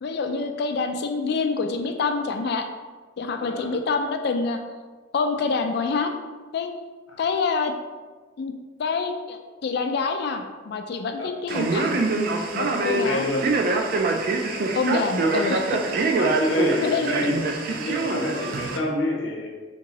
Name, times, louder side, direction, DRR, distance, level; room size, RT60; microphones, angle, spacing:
voice 1, 0.0-2.7 3.2-4.6 5.1-6.1 6.5-6.7 7.2-7.7 8.4-8.5 8.8-12.0 12.5-13.3 14.7-15.6 16.8-17.1, left 4 dB, 55° left, 6 dB, 0.3 m, -26 dB
voice 2, 3.4-3.7 7.1-7.2 11.2-11.3 12.8-13.5 15.2-15.4 16.2-17.4 17.7-19.5, left 1 dB, 70° left, -2 dB, 0.8 m, -27 dB
Male speech man speaking, 11.5-18.8, right 3 dB, 45° right, 0.3 m, -25 dB
3.5 x 2.9 x 2.9 m, 1.3 s
head